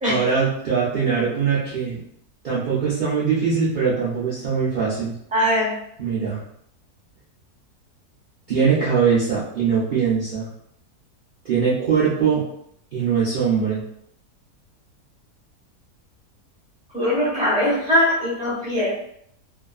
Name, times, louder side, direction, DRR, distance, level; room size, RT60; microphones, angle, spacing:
voice 1, 0.1-2.0 2.4-5.1 6.0-6.4 8.5-10.5 11.4-12.4 12.9-13.8, right 6 dB, 65° right, -9 dB, 0.5 m, -21 dB
voice 2, 5.3-5.8 16.9-18.9, equal, 5° right, -9 dB, 0.9 m, -21 dB
2.7 x 2.4 x 2.3 m, 0.70 s
omnidirectional pair, 1.6 m